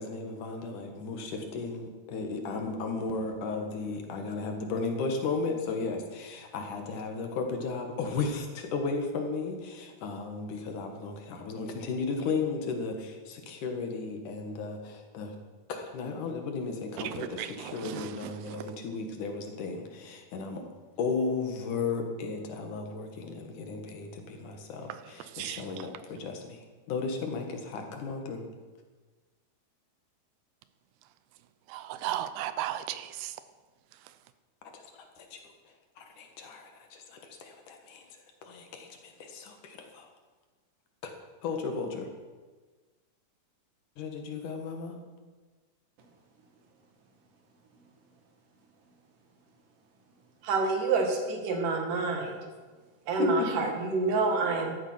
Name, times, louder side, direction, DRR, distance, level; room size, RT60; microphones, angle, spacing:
voice 1, 0.0-15.3 15.7-20.7 21.0-28.4 34.7-34.8 35.2-35.4 36.0-38.0 38.4-40.1 41.0-41.1 41.4-42.1 44.0-45.0 53.2-53.5, left 4 dB, 60° left, 2.9 m, -35 dB
voice 2, 17.0-18.3 25.4-25.6 31.7-33.3, right 12 dB, 85° right, 2.8 m, -35 dB
voice 3, 50.4-52.4 53.1-54.8, right 3 dB, 60° right, 3.4 m, -27 dB
15.5 x 12.5 x 5.9 m
omnidirectional pair, 4.5 m